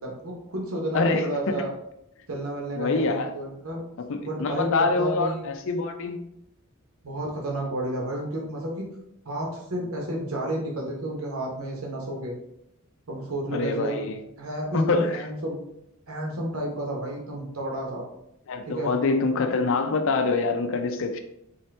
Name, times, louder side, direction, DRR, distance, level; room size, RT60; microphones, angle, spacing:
voice 1, 0.0-1.7 2.3-3.8 4.2-4.7 5.0-5.5 7.0-8.9 9.3-12.3 13.1-14.0 14.4-15.6 16.1-18.1 18.7-18.9, right 1 dB, 80° right, -1 dB, 1.0 m, -31 dB
voice 2, 0.9-1.6 2.8-3.3 4.0-6.2 13.5-14.2 14.7-15.2 18.5-21.2, left 3 dB, 65° left, 6 dB, 0.5 m, -25 dB
3.8 x 2.8 x 3.3 m, 0.80 s
head